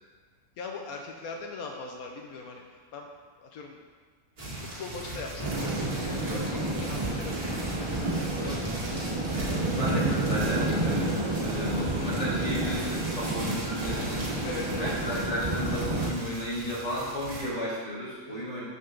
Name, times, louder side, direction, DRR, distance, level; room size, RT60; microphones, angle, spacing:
voice 1, 0.6-3.1 3.4-3.8 4.5-8.9 14.4-15.0 18.3-18.6, left 4 dB, 85° left, 2 dB, 1.3 m, -41 dB
sound 1, 4.4-17.5, right 1 dB, 90° right, 2.8 m, -38 dB
sound 2, 5.4-16.1, right 2 dB, 25° right, 0.8 m, -30 dB
voice 2, 9.6-11.1 11.4-14.3 14.8-18.6, equal, 25° left, -7 dB, 2.5 m, -34 dB
13.5 x 5.6 x 3.9 m, 1.5 s
omnidirectional pair, 1.5 m